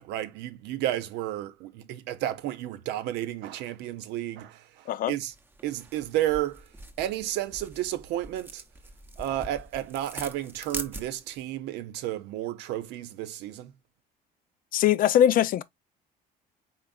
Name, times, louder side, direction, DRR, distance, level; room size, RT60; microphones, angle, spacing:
voice 1, 0.0-5.3 5.6-6.7 7.0-8.6 9.2-13.7, right 13 dB, 90° right, 0.7 m, -32 dB
sound 1, 5.3-11.4, right 2 dB, 15° right, 0.7 m, -43 dB
voice 2, 14.7-15.6, left 10 dB, 55° left, 0.5 m, -21 dB
4.5 x 3.9 x 2.3 m
cardioid pair, 110°, 17 cm